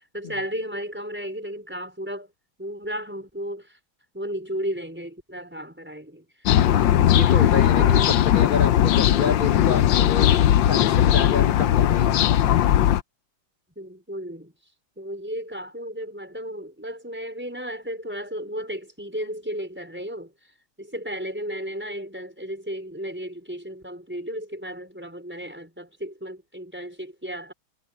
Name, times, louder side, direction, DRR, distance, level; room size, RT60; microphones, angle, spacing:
voice 1, 0.0-2.3 2.6-3.8 4.1-6.3 7.2-7.5 7.8-8.1 13.8-14.5 15.0-20.3 20.8-27.5, equal, 5° right, 5.0 m, -34 dB
sound 1, 6.5-13.0, left 11 dB, 70° left, 1.3 m, -18 dB
voice 2, 6.7-10.3 10.6-12.2, left 5 dB, 35° left, 0.9 m, -29 dB
omnidirectional pair, 2.4 m